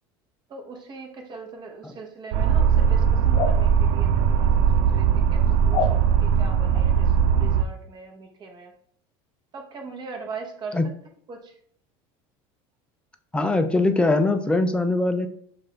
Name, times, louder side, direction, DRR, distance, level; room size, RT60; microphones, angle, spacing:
voice 1, 0.5-8.7 9.5-10.8 11.3-11.6, right 4 dB, 35° right, 2 dB, 1.1 m, -40 dB
sound 1, 2.3-7.6, right 7 dB, 65° right, 0.4 m, -20 dB
sound 2, 3.3-3.6 5.7-6.0 6.7-6.9, left 5 dB, 45° left, 0.7 m, -25 dB
voice 2, 13.3-15.3, left 2 dB, 10° left, 8 dB, 0.4 m, -21 dB
6.5 x 2.5 x 3.1 m, 0.62 s
supercardioid pair, 130°, 13 cm